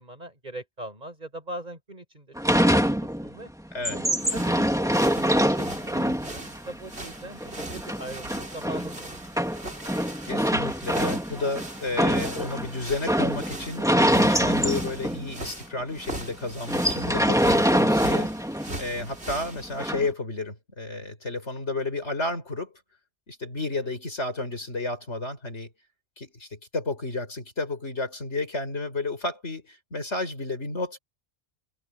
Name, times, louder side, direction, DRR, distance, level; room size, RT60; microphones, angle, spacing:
voice 1, 0.0-2.3 2.7-3.5 3.9-4.7 5.1-9.2 23.6-23.7, right 1 dB, 40° right, 5.3 m, -40 dB
sound 1, 2.4-3.4 3.7-15.4 15.8-15.9 16.1-16.3 16.7-18.9 19.8-20.1, equal, 5° right, 2.2 m, -25 dB
sound 2, 4.2-19.9, right 2 dB, 70° right, 4.4 m, -41 dB
voice 2, 10.3-18.3 18.8-22.7 23.3-25.7 26.2-31.0, left 2 dB, 90° left, 5.4 m, -32 dB
omnidirectional pair, 1.1 m